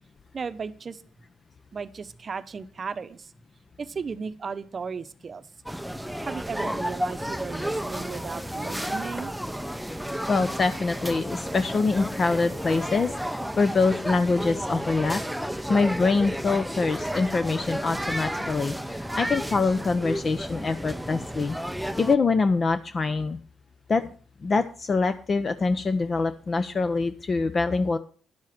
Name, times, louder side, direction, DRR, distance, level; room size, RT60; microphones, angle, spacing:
voice 1, 0.3-1.0 1.7-3.3 3.8-5.5 6.2-9.3, right 5 dB, 40° right, 13 dB, 0.8 m, -35 dB
sound 1, 5.7-22.2, equal, ahead, 0.6 m, -32 dB
voice 2, 10.3-15.2 15.7-21.6 22.0-23.4 23.9-24.1 24.4-28.0, left 4 dB, 40° left, 11 dB, 0.7 m, -24 dB
10.5 x 7.4 x 5.9 m, 0.41 s
cardioid pair, 90°, 0 cm